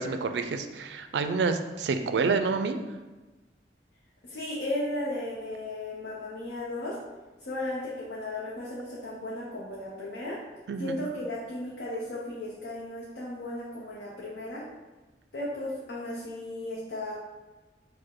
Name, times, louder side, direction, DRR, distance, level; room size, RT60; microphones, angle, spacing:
voice 1, 0.0-2.8 10.7-11.0, right 4 dB, 70° right, 8 dB, 0.3 m, -28 dB
voice 2, 4.2-7.0 7.4-10.4 10.8-14.6 15.3-17.1, left 1 dB, 70° left, -7 dB, 0.7 m, -35 dB
4.7 x 2.2 x 4.4 m, 1.2 s
head